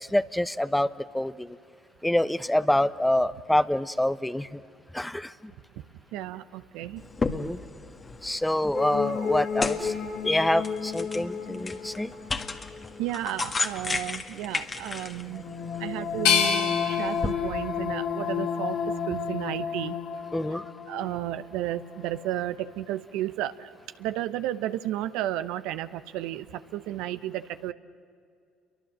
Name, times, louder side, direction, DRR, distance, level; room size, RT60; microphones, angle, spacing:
voice 1, 0.1-1.6 2.0-4.6 4.9-5.3 7.3-7.6 8.2-9.9 10.2-12.1 20.3-20.6, left 1 dB, 5° left, 15 dB, 0.9 m, -26 dB
voice 2, 6.1-7.0 13.0-15.5 15.8-20.0 20.9-23.7 24.0-27.7, right 13 dB, 75° right, 12 dB, 0.8 m, -33 dB
sound 1, 7.0-17.3, left 4 dB, 30° left, 1.7 m, -35 dB
sound 2, 8.7-13.1 15.3-21.6 22.0-22.1, left 6 dB, 60° left, 2.4 m, -32 dB
sound 3, 16.3-19.2 19.7-20.5, left 7 dB, 80° left, 2.3 m, -29 dB
29.5 x 23.5 x 7.5 m, 2.3 s
hypercardioid pair, 60°, 0 cm